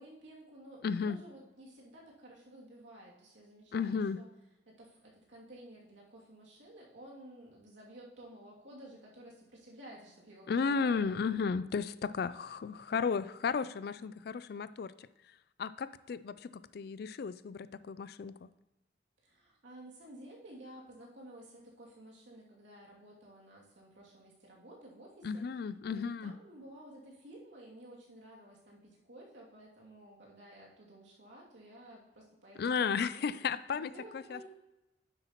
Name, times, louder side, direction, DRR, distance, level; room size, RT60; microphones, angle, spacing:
voice 1, 0.0-4.3 4.7-11.4 19.2-33.4 33.9-34.4, right 1 dB, 85° right, -3 dB, 2.6 m, -53 dB
voice 2, 0.8-1.2 3.7-4.2 10.5-15.1 15.6-18.5 25.2-26.3 32.6-33.9 34.3-34.4, left 5 dB, 55° left, 16 dB, 0.3 m, -34 dB
9.9 x 7.7 x 3.0 m, 0.98 s
head